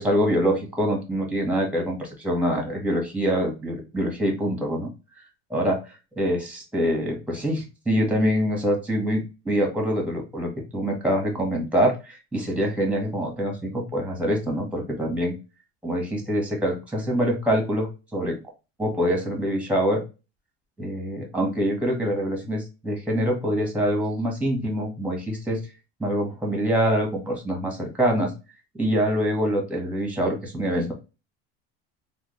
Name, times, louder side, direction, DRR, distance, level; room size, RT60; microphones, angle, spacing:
voice 1, 0.0-4.9 5.5-5.8 6.2-15.3 15.8-18.4 18.8-20.0 20.8-25.6 26.0-28.3 28.8-30.9, equal, 5° right, 1 dB, 1.4 m, -25 dB
3.5 x 2.2 x 3.1 m, 0.29 s
supercardioid pair, 95°, 30 cm